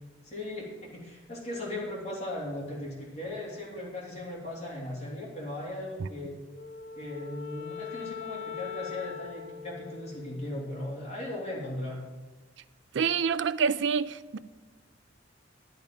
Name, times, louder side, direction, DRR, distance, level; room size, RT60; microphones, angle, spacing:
voice 1, 0.2-6.4 6.9-12.0, left 1 dB, 35° left, -4 dB, 3.0 m, -38 dB
Wind instrument woodwind instrument, 6.5-11.0, left 7 dB, 60° left, 0.8 m, -41 dB
voice 2, 12.9-14.4, right 6 dB, 65° right, 14 dB, 0.4 m, -27 dB
11.0 x 10.5 x 5.2 m, 1.3 s
head